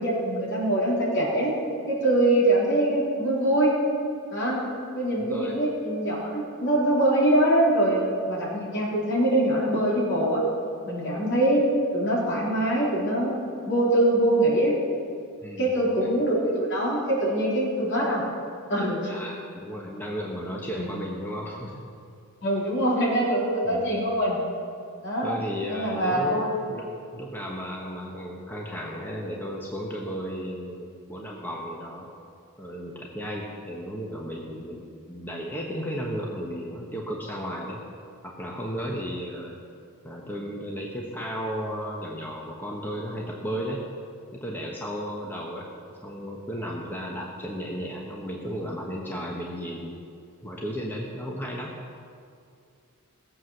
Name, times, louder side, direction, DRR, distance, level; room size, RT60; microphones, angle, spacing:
voice 1, 0.0-1.5 1.9-3.7 4.3-4.6 4.9-10.4 10.9-11.6 11.9-13.3 13.7-14.7 15.6-18.2 18.7-19.1 20.8-20.9 22.4-24.4 25.0-25.3 25.7-26.6, right 1 dB, 55° left, -5 dB, 4.0 m, -23 dB
voice 2, 5.2-5.6 15.4-15.7 16.0-16.1 19.1-21.8 23.6-24.0 25.2-26.9 27.1-32.1 32.6-37.8 38.2-39.6 40.0-43.8 44.3-45.7 46.0-50.0 50.4-51.7, equal, 10° left, -2 dB, 1.1 m, -34 dB
17.5 x 7.8 x 6.6 m, 2.4 s
head